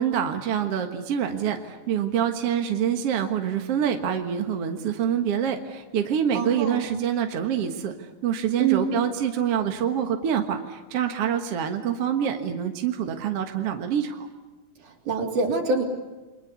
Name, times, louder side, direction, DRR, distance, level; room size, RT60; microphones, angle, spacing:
voice 1, 0.0-7.9 8.2-14.3, right 8 dB, 55° right, 5 dB, 2.3 m, -26 dB
voice 2, 6.3-6.9 8.6-9.0 14.8-15.8, right 4 dB, 80° right, 2 dB, 4.8 m, -25 dB
29.5 x 23.0 x 8.3 m, 1.2 s
omnidirectional pair, 3.5 m